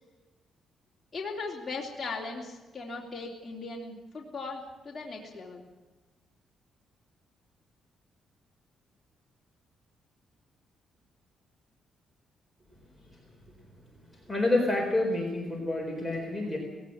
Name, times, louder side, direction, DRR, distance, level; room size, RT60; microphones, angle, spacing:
voice 1, 1.1-5.6, left 3 dB, 15° left, -4 dB, 3.1 m, -38 dB
voice 2, 14.1-16.6, left 2 dB, 5° right, 1 dB, 4.3 m, -28 dB
19.0 x 17.0 x 8.6 m, 1.2 s
cardioid pair, 145°, 0 cm